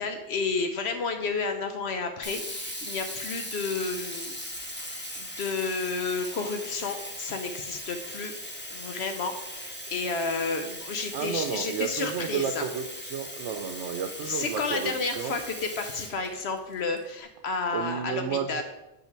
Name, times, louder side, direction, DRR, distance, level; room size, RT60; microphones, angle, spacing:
voice 1, 0.0-4.4 4.8-8.3 8.7-12.6 14.2-18.6, left 4 dB, 70° left, 6 dB, 0.9 m, -31 dB
Sink (filling or washing), 2.2-17.0, equal, 10° left, 1.0 m, -39 dB
voice 2, 11.1-15.3 17.7-18.6, right 7 dB, 85° right, 7 dB, 0.9 m, -32 dB
7.5 x 5.6 x 4.5 m, 0.97 s
omnidirectional pair, 1.2 m